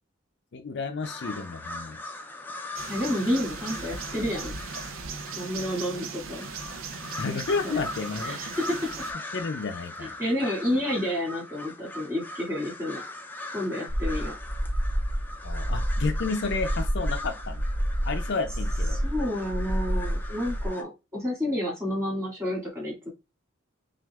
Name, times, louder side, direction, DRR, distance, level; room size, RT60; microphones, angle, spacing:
voice 1, 0.5-2.0 7.2-8.6 9.3-10.1 15.4-17.6 18.0-19.0, left 4 dB, 60° left, 0.5 m, -31 dB
sound 1, 1.0-20.8, left 2 dB, 10° left, 0.5 m, -41 dB
sound 2, 2.8-9.1, right 5 dB, 85° right, 0.6 m, -38 dB
voice 2, 2.9-4.6 5.4-6.4 7.3-7.4 7.6-7.8 8.2-8.8 10.0-13.0 13.5-14.3 19.0-23.1, left 1 dB, 15° right, 2.2 m, -30 dB
sound 3, 13.9-20.7, equal, 55° right, 0.9 m, -29 dB
6.0 x 2.5 x 2.4 m
head